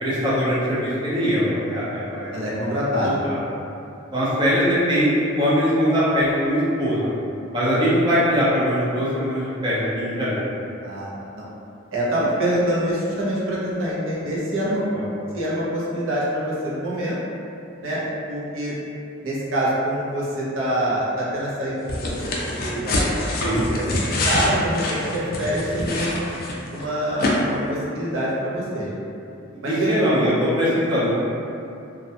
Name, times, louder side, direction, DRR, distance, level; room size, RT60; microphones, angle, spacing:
voice 1, 0.0-2.7 3.0-3.4 4.1-7.1 7.5-10.4 14.9-15.0 23.4-23.6 29.7-31.2, equal, 25° right, -9 dB, 0.5 m, -21 dB
voice 2, 2.3-3.3 10.8-11.1 11.3-11.5 11.9-14.9 15.3-17.2 17.8-18.7 19.2-22.3 22.6-23.1 23.4-26.2 26.7-29.1 29.6-30.0, right 1 dB, 75° right, -7 dB, 0.6 m, -25 dB
sound 1, 21.9-26.8 27.2-27.3, left 2 dB, 45° left, 0.3 m, -25 dB
2.3 x 2.1 x 2.7 m, 2.6 s
head